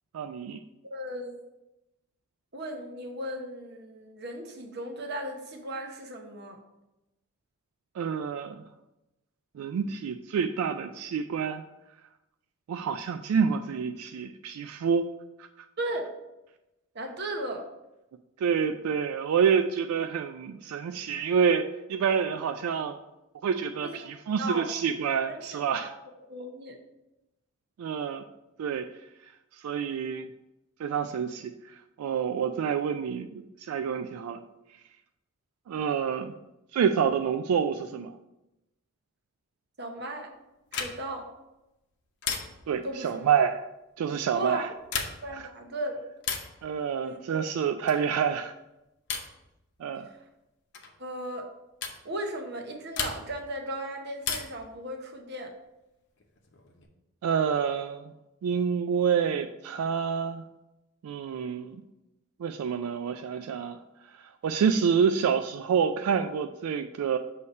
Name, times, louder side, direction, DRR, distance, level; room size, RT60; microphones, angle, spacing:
voice 1, 0.1-0.6 8.0-8.6 9.6-11.6 12.7-15.1 15.4-15.7 18.4-23.0 23.4-25.9 27.8-28.2 28.6-28.9 29.6-30.3 30.8-34.4 35.7-36.3 36.7-38.1 42.7-43.7 44.0-44.7 45.3-45.4 46.6-48.5 49.8-50.1 57.2-58.1 58.4-60.4 61.0-61.8 62.4-63.8 64.1-67.2, right 7 dB, 85° right, 7 dB, 0.3 m, -28 dB
voice 2, 0.8-1.3 2.5-6.6 15.8-16.0 16.9-17.6 23.8-24.1 24.4-24.7 25.3-25.9 26.3-26.8 39.8-40.3 40.7-41.3 42.8-43.3 44.3-44.7 45.2-46.0 47.0-47.2 50.1-50.2 51.0-51.5 52.0-55.5, right 1 dB, 50° right, 3 dB, 0.9 m, -36 dB
sound 1, 40.7-41.2 42.2-42.8 44.8-45.4 46.2-46.6 47.8-48.2 49.1-49.4 50.7-51.0 51.8-52.0 52.9-53.5 54.2-54.7 56.2-56.8, left 6 dB, 55° left, 0.7 m, -35 dB
6.5 x 2.8 x 5.3 m, 0.95 s
head